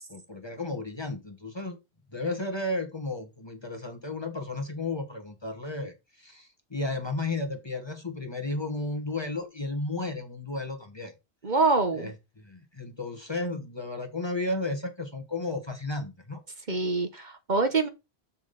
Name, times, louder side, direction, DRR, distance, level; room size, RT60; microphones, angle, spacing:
voice 1, 0.1-1.8 2.1-11.1 12.0-16.4, left 2 dB, 25° left, 1.2 m, -33 dB
voice 2, 11.4-12.1 16.7-17.9, right 3 dB, 45° right, 1.1 m, -25 dB
7.2 x 6.9 x 3.9 m
omnidirectional pair, 1.1 m